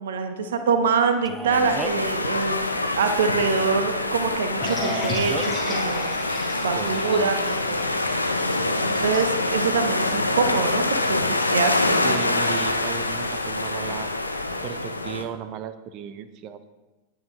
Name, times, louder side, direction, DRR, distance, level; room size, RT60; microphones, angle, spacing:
voice 1, 0.0-2.6 3.0-6.1 6.6-7.9 8.8-12.1, right 5 dB, 60° right, 7 dB, 1.3 m, -25 dB
Male speech man speaking, 1.3-2.1 4.6-5.5, right 2 dB, 10° right, 0.6 m, -34 dB
sound 1, 1.5-15.2, left 2 dB, 85° left, 0.9 m, -25 dB
sound 2, 4.6-9.9, left 2 dB, 15° left, 5.4 m, -35 dB
voice 2, 6.7-7.4 12.0-14.1 14.6-16.7, right 8 dB, 40° right, 11 dB, 1.0 m, -35 dB
19.5 x 8.8 x 3.8 m, 1.1 s
figure-of-eight pair, 90°, 0 cm